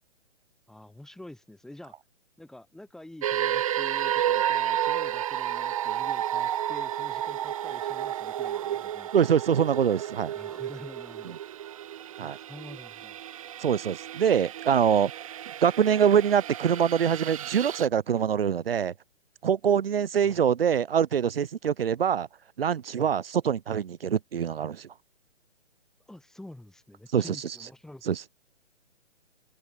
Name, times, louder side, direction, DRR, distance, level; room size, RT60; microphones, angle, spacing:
voice 1, 0.7-1.9 2.4-9.1 10.4-11.4 12.2-13.2 20.2-20.4 23.0-23.1 26.1-28.0, left 1 dB, ahead, 5.6 m, -47 dB
sound 1, 3.2-17.9, right 11 dB, 30° right, 1.4 m, -31 dB
voice 2, 9.1-10.3 11.3-11.4 12.2-12.4 13.6-15.1 15.6-18.9 19.4-22.3 22.6-24.9 27.1-27.6 28.0-28.2, right 8 dB, 55° right, 1.8 m, -24 dB
open air
hypercardioid pair, 170°, 36 cm